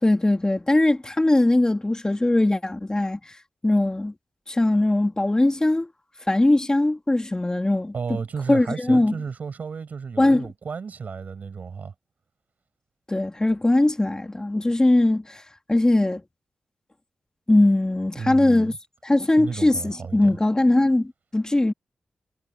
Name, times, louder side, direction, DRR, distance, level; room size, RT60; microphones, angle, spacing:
voice 1, 0.0-3.4 3.6-4.1 4.5-5.9 6.3-8.2 8.5-9.2 10.2-10.5 13.1-15.4 15.7-16.2 17.5-18.7 19.0-21.7, left 2 dB, 25° left, 2.8 m, -20 dB
voice 2, 7.9-11.9 18.2-18.8 19.4-20.3, right 5 dB, 70° right, 6.9 m, -33 dB
supercardioid pair, 40°, 3 cm